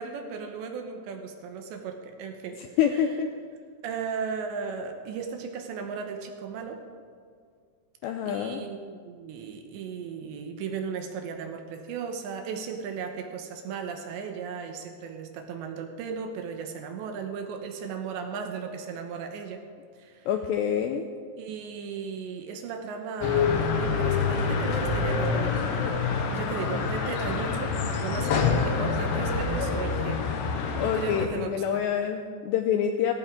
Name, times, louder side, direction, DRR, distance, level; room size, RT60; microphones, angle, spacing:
voice 1, 0.0-2.6 2.9-3.1 3.8-6.8 8.0-19.6 20.0-20.3 21.4-25.8 26.3-30.3 30.9-31.9, right 6 dB, 75° right, 4 dB, 3.0 m, -36 dB
voice 2, 2.8-3.3 8.0-8.6 20.3-21.1 30.8-33.1, left 8 dB, 85° left, 5 dB, 2.5 m, -26 dB
sound 1, 23.2-31.3, left 5 dB, 70° left, 3.1 m, -26 dB
18.0 x 15.0 x 3.7 m, 2.1 s
omnidirectional pair, 5.6 m